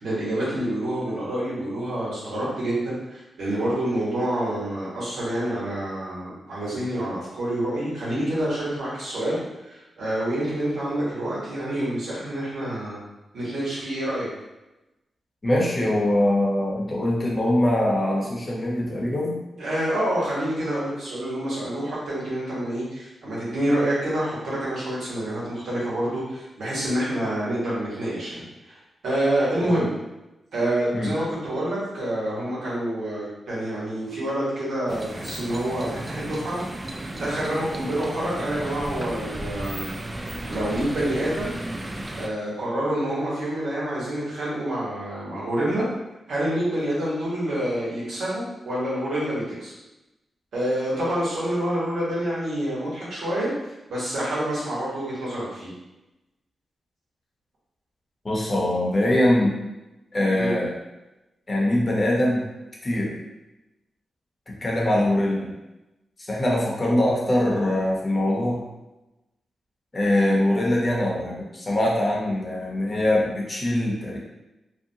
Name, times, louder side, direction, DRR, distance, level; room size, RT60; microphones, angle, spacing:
voice 1, 0.0-13.0 13.3-14.3 19.6-28.8 29.0-29.9 30.5-39.9 40.5-41.5 42.2-45.8 46.3-49.7 50.5-53.5 53.9-55.7 60.3-60.5, right 1 dB, 80° right, -8 dB, 1.3 m, -27 dB
voice 2, 15.4-19.4 29.6-29.7 30.9-31.1 58.2-59.5 60.1-60.7 61.5-62.4 62.8-63.2 64.5-65.5 66.2-68.7 69.9-74.2, left 1 dB, 35° left, -3 dB, 0.8 m, -23 dB
sound 1, 34.9-42.3, right 1 dB, 25° right, 0.3 m, -34 dB
2.7 x 2.2 x 2.7 m, 0.99 s
cardioid pair, 60°, 0 cm